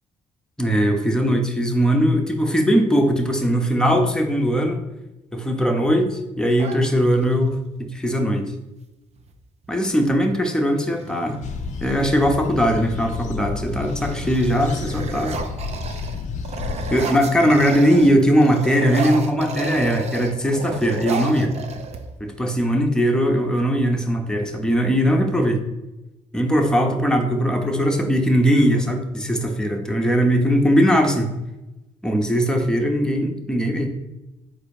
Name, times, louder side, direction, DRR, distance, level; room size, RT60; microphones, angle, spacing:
voice 1, 0.6-4.8 5.3-8.4 9.7-11.4 11.8-15.4 16.9-21.5 22.2-25.6 26.3-31.3 32.0-33.9, equal, 5° left, 2 dB, 0.8 m, -20 dB
sound 1, 6.6-7.5 9.2-9.3 9.6-10.1 10.7-12.2 12.8-13.2 13.6-18.1 18.4-22.3, right 4 dB, 45° right, 0.6 m, -33 dB
sound 2, 11.4-17.0, left 5 dB, 50° left, 0.5 m, -31 dB
4.1 x 2.6 x 4.7 m, 0.98 s
supercardioid pair, 65°, 15 cm